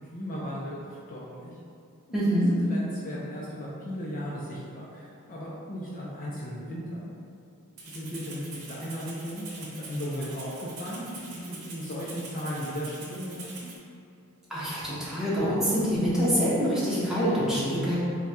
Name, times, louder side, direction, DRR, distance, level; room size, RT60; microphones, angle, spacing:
voice 1, 0.1-1.6 2.1-7.1 7.9-13.5, equal, 40° left, -6 dB, 0.5 m, -36 dB
voice 2, 2.1-2.5 14.5-18.0, equal, ahead, -10 dB, 0.9 m, -25 dB
Rattle (instrument), 7.8-13.8, right 3 dB, 90° right, 0.8 m, -44 dB
3.6 x 2.2 x 4.2 m, 2.5 s
head